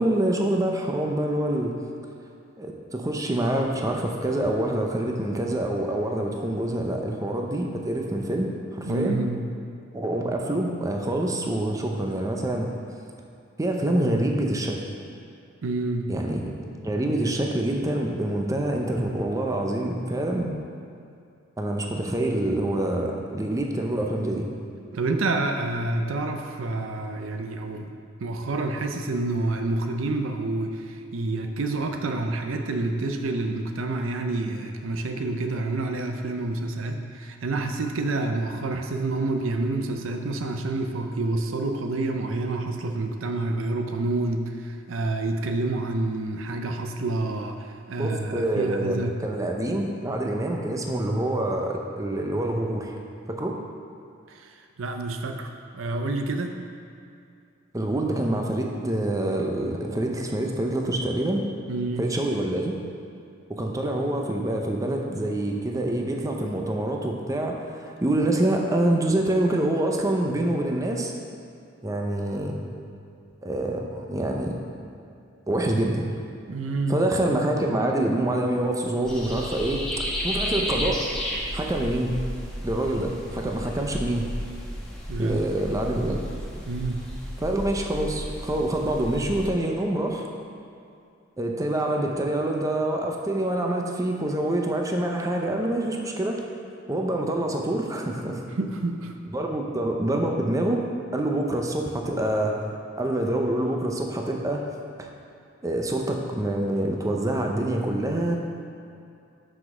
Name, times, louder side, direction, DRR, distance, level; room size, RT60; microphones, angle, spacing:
voice 1, 0.0-1.7 2.6-9.2 9.9-12.7 13.6-14.8 16.1-16.6 16.8-20.6 21.6-24.5 48.0-52.9 53.3-53.5 57.7-61.4 62.0-62.7 63.5-71.1 71.8-72.6 73.4-74.5 75.5-76.0 76.9-81.0 81.5-82.2 82.6-84.3 85.2-86.2 87.4-90.3 91.4-96.4 96.9-98.4 99.3-100.8 101.1-102.6 103.0-104.7 105.0-105.1 105.6-108.4, right 1 dB, 15° right, 1 dB, 0.6 m, -26 dB
voice 2, 8.9-9.5 15.6-16.1 24.9-27.9 28.2-49.2 54.3-56.6 61.7-62.1 76.5-77.0 85.1-85.4 86.7-87.1 98.6-99.1, right 2 dB, 85° right, 5 dB, 0.6 m, -28 dB
sound 1, 79.0-89.5, equal, 5° left, 1.2 m, -33 dB
6.0 x 5.0 x 6.0 m, 2.5 s
head